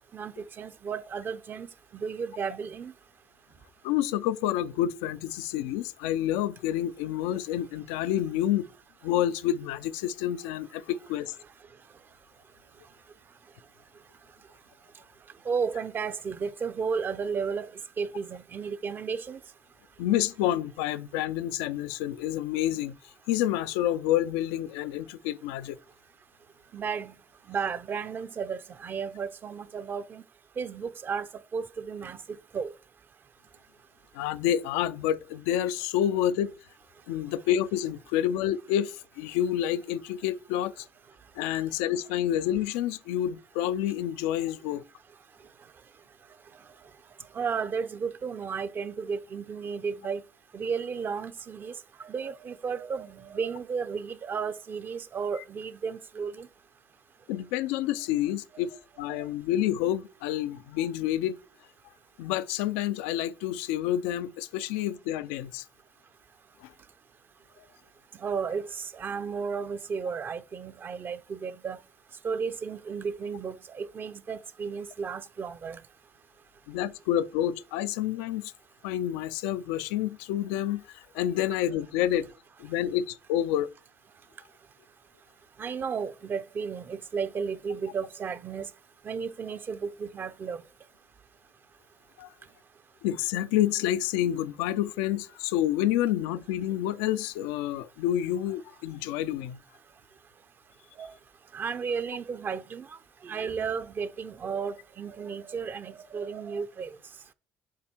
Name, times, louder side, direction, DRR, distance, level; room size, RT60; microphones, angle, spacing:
voice 1, 0.1-2.9 15.5-17.7 18.0-19.4 26.7-27.1 27.5-30.2 30.6-31.3 31.5-32.2 32.5-32.7 47.3-50.2 50.5-51.7 52.0-56.5 59.1-59.2 68.2-71.8 72.2-75.8 85.6-88.7 89.0-90.6 101.0-101.1 101.5-102.9 103.2-107.0, right 6 dB, 45° right, 0.6 m, -33 dB
voice 2, 3.8-8.7 9.0-11.3 20.0-23.0 23.3-25.8 34.1-36.5 37.1-40.9 41.4-44.8 57.3-61.4 62.2-65.6 66.6-66.7 76.7-78.5 78.8-82.3 82.6-83.7 92.2-92.3 93.0-99.6, left 12 dB, 90° left, 0.4 m, -28 dB
7.4 x 4.1 x 4.4 m
supercardioid pair, 65°, 5 cm